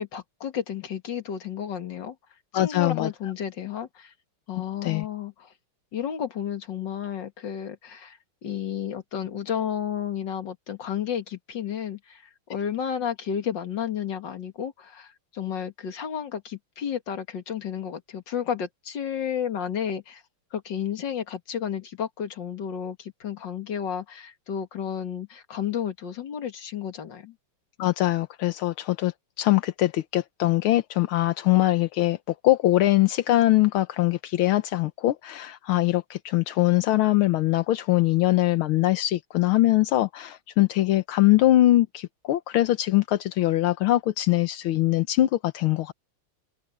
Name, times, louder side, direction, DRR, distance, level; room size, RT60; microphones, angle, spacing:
voice 1, 0.0-2.2 2.5-4.1 4.5-5.5 5.9-12.2 12.5-20.2 20.5-27.3, left 8 dB, 60° left, 2.5 m, -32 dB
voice 2, 2.5-3.1 4.8-5.1 27.8-45.9, left 16 dB, 80° left, 1.7 m, -22 dB
omnidirectional pair, 2.3 m